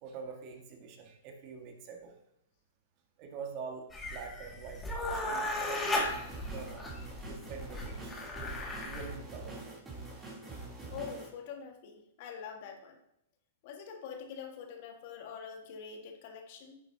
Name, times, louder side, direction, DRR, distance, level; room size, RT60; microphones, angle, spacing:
voice 1, 0.0-2.2 3.2-4.8 5.1-6.1 6.5-6.9 7.2-8.2 8.5-9.7 10.5-10.6, right 5 dB, 40° right, 3 dB, 1.8 m, -45 dB
sound 1, 3.9-9.1, left 1 dB, 15° left, 2.2 m, -36 dB
sound 2, 6.0-11.3, right 2 dB, 10° right, 3.1 m, -45 dB
voice 2, 10.9-13.0 13.6-16.8, left 6 dB, 50° left, 4 dB, 1.7 m, -45 dB
11.0 x 7.5 x 2.8 m, 0.78 s
hypercardioid pair, 115°, 0 cm